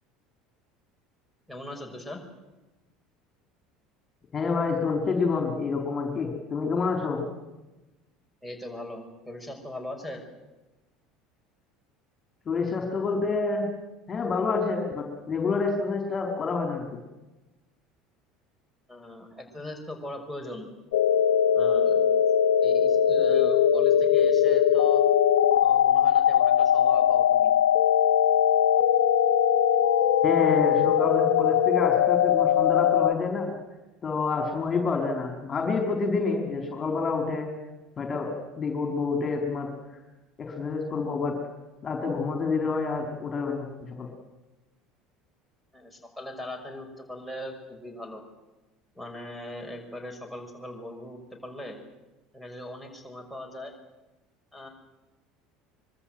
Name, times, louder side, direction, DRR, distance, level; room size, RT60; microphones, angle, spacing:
voice 1, 1.5-2.2 8.4-10.2 18.9-20.7 21.5-22.0 22.6-25.0 25.6-27.5 45.7-48.2 48.9-51.8 52.3-53.7 54.5-54.7, equal, ahead, 6 dB, 6.2 m, -40 dB
voice 2, 4.3-7.2 12.5-13.7 14.1-16.8 30.2-33.5 34.0-37.5 38.0-39.7 40.4-41.4 41.8-44.1, left 4 dB, 30° left, 2 dB, 4.8 m, -28 dB
sound 1, 20.9-33.1, left 9 dB, 65° left, 1.1 m, -21 dB
25.0 x 24.0 x 7.9 m, 1.1 s
figure-of-eight pair, 65°, 0 cm